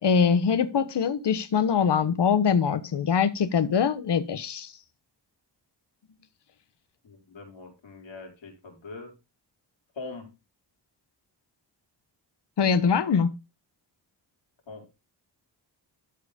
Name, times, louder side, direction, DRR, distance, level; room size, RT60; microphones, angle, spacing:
voice 1, 0.0-4.7 12.6-13.3, left 6 dB, 65° left, 1.3 m, -23 dB
voice 2, 7.0-9.1 10.0-10.3 14.7-14.9, left 3 dB, 90° left, 4.8 m, -42 dB
13.5 x 4.8 x 5.2 m
wide cardioid pair, 115°, 44 cm